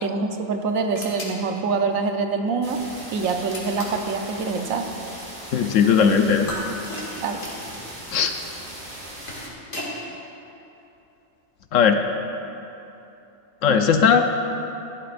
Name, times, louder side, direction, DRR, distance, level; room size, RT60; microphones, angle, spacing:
voice 1, 0.0-2.8 3.1-4.9 7.2-7.4 13.7-13.8, right 4 dB, 75° right, 5 dB, 1.2 m, -25 dB
sound 1, 0.9-1.4 3.5-4.1 6.5-7.9 9.0-10.0, left 1 dB, 55° left, 2.4 m, -35 dB
sound 2, 2.6-9.5, right 1 dB, 35° right, 1.7 m, -39 dB
voice 2, 5.5-6.5 8.1-8.3 11.7-12.0 13.6-14.3, left 7 dB, 70° left, 6 dB, 1.0 m, -18 dB
16.0 x 12.5 x 2.5 m, 2.8 s
omnidirectional pair, 1.4 m